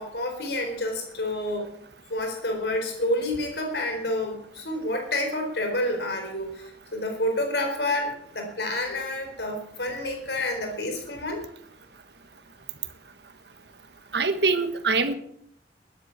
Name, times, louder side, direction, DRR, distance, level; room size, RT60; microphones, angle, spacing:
voice 1, 0.0-1.7 2.1-11.4, left 1 dB, 75° left, 3 dB, 4.2 m, -29 dB
voice 2, 14.1-15.1, right 4 dB, 75° right, 10 dB, 1.4 m, -23 dB
13.0 x 11.0 x 7.2 m, 0.68 s
head